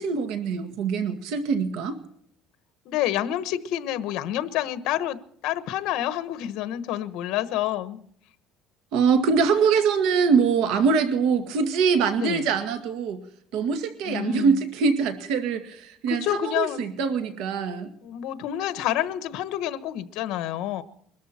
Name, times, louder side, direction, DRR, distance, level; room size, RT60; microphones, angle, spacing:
voice 1, 0.0-2.0 8.9-13.2 13.5-17.9, right 5 dB, 75° right, 8 dB, 2.0 m, -23 dB
voice 2, 2.8-8.0 12.2-12.5 14.0-14.6 16.1-16.8 18.0-20.8, left 12 dB, 70° left, 13 dB, 1.2 m, -28 dB
22.5 x 13.5 x 4.3 m, 0.67 s
cardioid pair, 145°, 0 cm